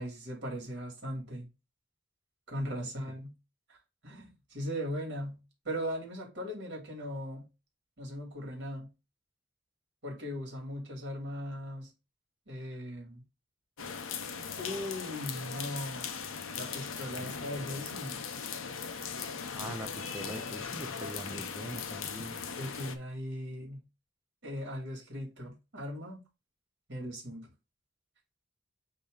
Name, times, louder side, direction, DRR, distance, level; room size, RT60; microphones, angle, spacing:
voice 1, 0.0-1.5 2.5-3.3 3.7-3.8 4.0-5.4 5.6-7.5 8.0-8.9 10.0-11.9 12.5-13.2 14.6-16.1 16.5-18.2 22.6-23.8 24.4-26.2 26.9-27.5, equal, 55° right, 2.8 m, -38 dB
voice 2, 2.6-2.9 19.5-22.4, right 1 dB, 10° right, 0.5 m, -42 dB
sound 1, 13.8-23.0, left 6 dB, 85° left, 0.8 m, -39 dB
8.3 x 2.9 x 3.9 m
head